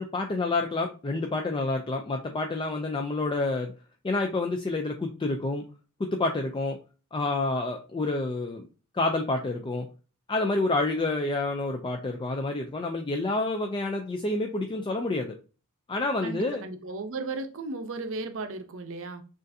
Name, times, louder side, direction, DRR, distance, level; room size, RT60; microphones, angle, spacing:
voice 1, 0.0-3.7 4.0-5.6 6.0-6.8 7.1-8.7 8.9-9.9 10.3-15.4 15.9-16.6, left 2 dB, 25° left, 0.4 m, -28 dB
voice 2, 16.2-19.2, right 3 dB, 65° right, 0.7 m, -35 dB
6.4 x 2.5 x 2.6 m
head